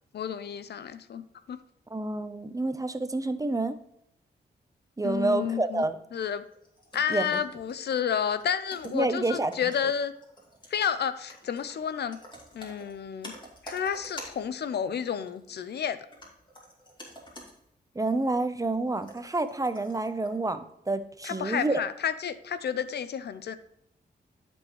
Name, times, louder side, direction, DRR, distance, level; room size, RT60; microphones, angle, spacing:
voice 1, 0.1-1.2 1.5-1.6 5.0-5.8 6.1-6.4 6.9-10.1 10.7-12.2 12.5-13.3 13.6-16.1 21.2-23.6, left 8 dB, 70° left, 13 dB, 0.5 m, -30 dB
voice 2, 1.9-3.8 5.0-6.0 7.1-7.4 8.9-9.5 17.9-20.6 20.9-21.8, right 2 dB, 20° right, 10 dB, 0.7 m, -28 dB
sound 1, 6.2-7.9 8.3-14.6 15.3-15.6 16.1-17.6 17.9-18.0 18.6-20.5, equal, 25° left, 2.6 m, -49 dB
12.5 x 4.4 x 3.1 m, 0.78 s
cardioid pair, 65°, 18 cm